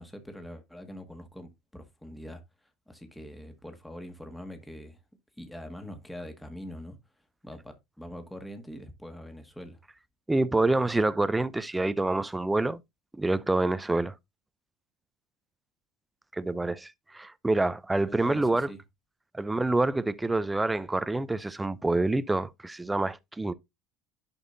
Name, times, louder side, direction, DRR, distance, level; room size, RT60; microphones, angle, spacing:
voice 1, 0.0-5.0 5.4-7.0 7.4-9.8 18.1-18.8, equal, 5° left, 1.8 m, -43 dB
voice 2, 10.3-12.8 13.1-14.2 16.3-18.7 19.3-23.5, right 2 dB, 10° right, 0.6 m, -27 dB
11.0 x 5.3 x 2.7 m
supercardioid pair, 90°, 0 cm